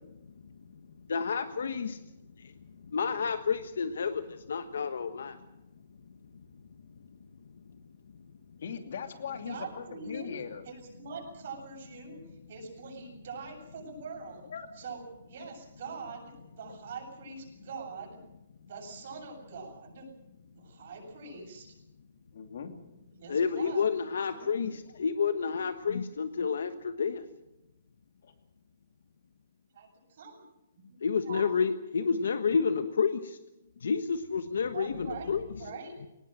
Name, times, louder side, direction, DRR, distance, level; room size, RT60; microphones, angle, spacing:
voice 1, 1.1-2.0 2.4-2.5 2.8-5.4 23.3-27.2 31.0-33.4 33.8-35.5, left 5 dB, 80° left, 9 dB, 1.3 m, -30 dB
voice 2, 8.6-10.6 14.5-14.7 22.3-22.7 28.2-28.3, left 7 dB, 60° left, 6 dB, 2.7 m, -40 dB
voice 3, 9.3-10.4 10.6-12.2 12.5-14.5 14.7-18.2 18.6-20.1 20.5-21.7 23.1-24.7 29.7-30.4 30.7-31.5 32.0-32.1 34.6-35.3 35.6-35.9, right 4 dB, 50° right, 0 dB, 7.9 m, -44 dB
20.5 x 19.0 x 7.6 m, 0.93 s
hypercardioid pair, 175°, 0 cm